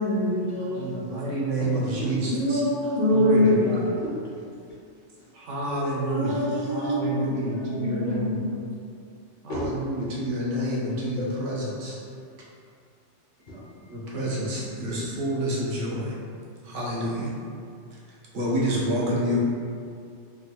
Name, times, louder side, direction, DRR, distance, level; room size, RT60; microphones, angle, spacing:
voice 1, 0.0-1.1 2.3-3.8 6.0-8.6, left 1 dB, 20° right, -7 dB, 0.3 m, -25 dB
voice 2, 0.7-2.6 3.1-3.8 5.3-6.4 6.7-8.5 9.4-12.0 13.9-16.1 16.6-17.3 18.3-19.4, right 1 dB, 85° right, -5 dB, 1.1 m, -28 dB
voice 3, 3.7-4.7 5.2-5.3 6.5-6.7 7.0-7.6 8.0-8.1 9.5-9.7 10.2-10.4 12.2-12.3 13.4-13.9 14.4-15.0, equal, 55° left, -7 dB, 0.6 m, -38 dB
3.5 x 2.2 x 2.7 m, 2.3 s
omnidirectional pair, 1.2 m